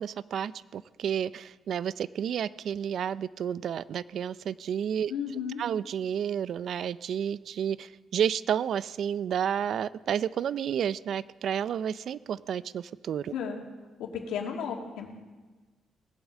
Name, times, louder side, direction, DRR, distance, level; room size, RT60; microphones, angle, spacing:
voice 1, 0.0-5.1 5.6-13.3, right 8 dB, 65° right, 18 dB, 0.4 m, -31 dB
voice 2, 5.1-5.6 13.3-13.6 14.0-15.1, left 7 dB, 90° left, 0 dB, 2.4 m, -33 dB
19.0 x 8.7 x 7.4 m, 1.3 s
cardioid pair, 90°, 0 cm